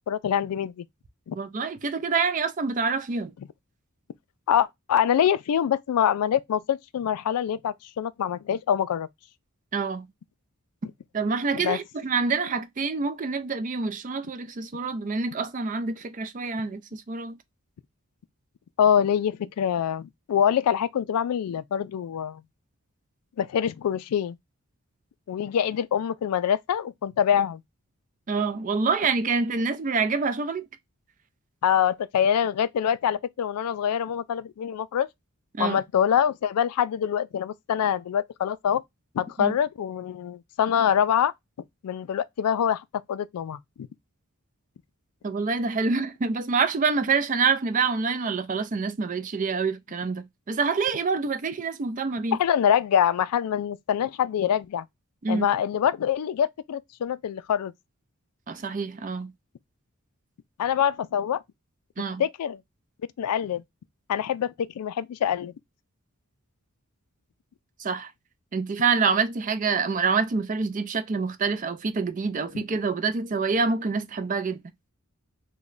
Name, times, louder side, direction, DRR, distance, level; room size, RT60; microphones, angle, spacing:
voice 1, 0.1-0.8 1.3-1.4 4.5-9.1 11.5-11.8 18.8-22.4 23.4-24.4 25.3-27.6 31.6-35.1 35.6-38.8 39.1-41.3 41.8-43.9 52.3-54.9 55.3-57.7 60.6-61.4 62.2-62.6 63.2-63.6 64.1-65.5 72.5-72.6, left 9 dB, 85° left, 0.3 m, -25 dB
voice 2, 1.3-3.3 9.7-10.1 11.1-17.4 28.3-30.7 35.5-35.8 39.4-39.5 45.2-52.4 55.2-55.5 58.5-59.3 62.0-62.2 67.8-68.1 68.5-74.6, right 4 dB, 35° right, 0.4 m, -26 dB
3.1 x 2.2 x 3.7 m
head